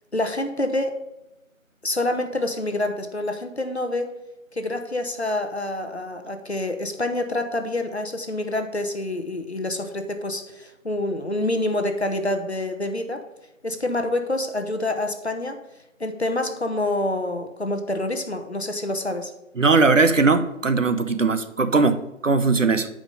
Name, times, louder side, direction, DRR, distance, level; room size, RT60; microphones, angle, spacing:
voice 1, 0.1-1.0 1.8-4.1 4.5-13.2 13.6-15.6 16.0-19.3, left 1 dB, 55° left, 7 dB, 0.8 m, -27 dB
voice 2, 19.6-22.9, right 3 dB, 65° right, 10 dB, 0.7 m, -19 dB
7.3 x 4.9 x 5.4 m, 0.93 s
figure-of-eight pair, 170°, 41 cm